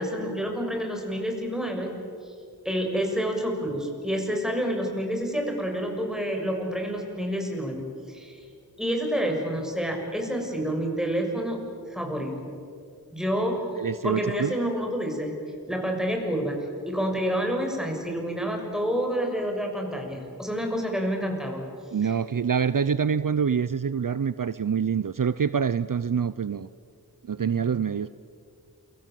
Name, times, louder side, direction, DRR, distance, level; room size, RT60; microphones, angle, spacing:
voice 1, 0.0-1.9 2.2-2.3 2.6-8.4 8.8-11.6 11.9-12.5 13.1-13.6 14.0-15.3 15.7-16.5 16.9-21.6 22.0-22.1, equal, ahead, 1 dB, 6.5 m, -28 dB
voice 2, 13.8-14.5 21.9-26.7 27.2-28.1, right 7 dB, 60° right, 15 dB, 0.6 m, -26 dB
28.5 x 24.0 x 7.7 m, 2.4 s
wide cardioid pair, 40°, 38 cm